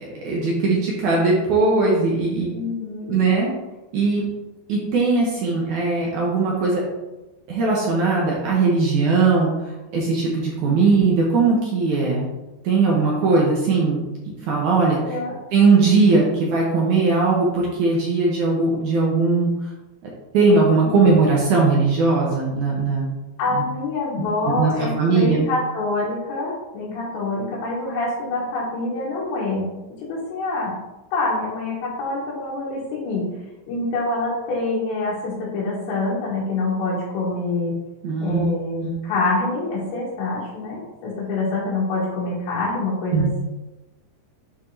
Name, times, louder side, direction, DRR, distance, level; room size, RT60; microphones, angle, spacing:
voice 1, 0.0-2.5 3.1-3.5 3.9-4.2 4.7-6.8 7.5-9.5 9.9-12.3 12.6-14.1 14.5-15.2 15.5-19.5 20.3-23.1 23.5-23.6 24.5-24.7 25.0-25.5 38.0-38.5 38.8-38.9 43.1-43.3, right 4 dB, 75° right, -3 dB, 1.8 m, -19 dB
voice 2, 2.5-3.2 15.0-15.4 20.8-21.1 23.4-29.7 30.1-30.7 31.1-33.3 33.7-37.8 38.2-43.4, left 2 dB, 80° left, -8 dB, 3.8 m, -26 dB
9.3 x 4.8 x 2.8 m, 1.0 s
omnidirectional pair, 5.0 m